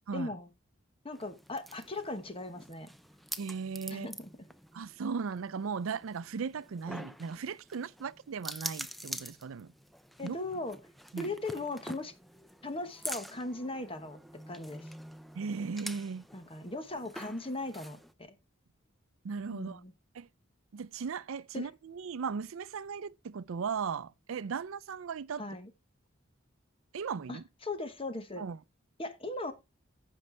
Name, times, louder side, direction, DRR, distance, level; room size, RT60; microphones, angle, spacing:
voice 1, 0.1-0.5 1.0-2.9 3.9-4.3 10.2-10.8 11.2-12.1 12.6-14.2 14.5-14.9 16.3-18.3 19.5-19.9 21.5-21.7 25.4-25.7 27.3-28.4 29.0-29.5, left 2 dB, 25° left, 1.1 m, -38 dB
sound 1, 1.1-18.1, equal, ahead, 0.4 m, -46 dB
voice 2, 3.4-4.1 4.7-9.7 10.2-10.4 11.1-11.3 15.3-16.2 19.2-19.8 20.1-20.3 20.7-25.4 26.9-27.4 28.4-28.6, right 5 dB, 80° right, 0.4 m, -37 dB
15.0 x 5.4 x 3.3 m
head